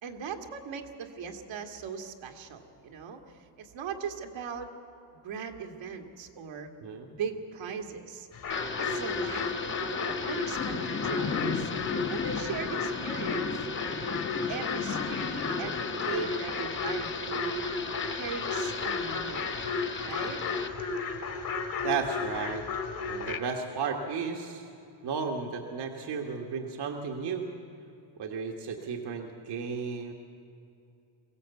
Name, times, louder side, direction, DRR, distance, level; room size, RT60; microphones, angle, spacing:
voice 1, 0.0-3.2 3.6-4.7 5.2-6.7 7.1-8.3 8.8-9.8 10.1-11.7 12.1-13.5 14.5-17.7 18.1-19.5 20.0-20.4, right 6 dB, 75° right, 3 dB, 2.1 m, -39 dB
sound 1, 8.3-23.4, left 4 dB, 45° left, 2.0 m, -34 dB
Thunder / Rain, 8.5-20.7, left 5 dB, 25° left, 1.1 m, -36 dB
voice 2, 21.8-22.6 23.1-24.7 25.0-27.5 28.2-30.1, right 5 dB, 60° right, 2 dB, 1.5 m, -33 dB
23.0 x 16.5 x 8.2 m, 2.7 s
cardioid pair, 145°, 46 cm